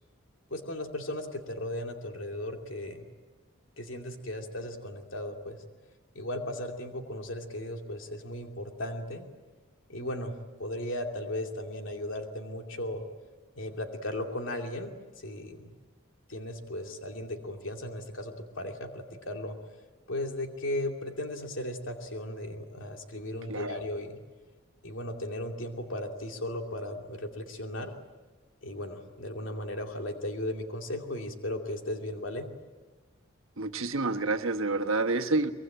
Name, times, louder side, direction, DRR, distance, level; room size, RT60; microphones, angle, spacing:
voice 1, 0.5-3.1 3.8-5.6 6.1-9.3 9.9-10.3 10.6-13.0 13.6-15.7 16.3-19.6 20.1-24.2 24.8-27.9 28.6-32.5, left 1 dB, 70° left, 3 dB, 2.6 m, -36 dB
voice 2, 33.6-35.5, right 3 dB, 80° right, 5 dB, 1.4 m, -28 dB
24.0 x 22.0 x 8.9 m, 1.3 s
head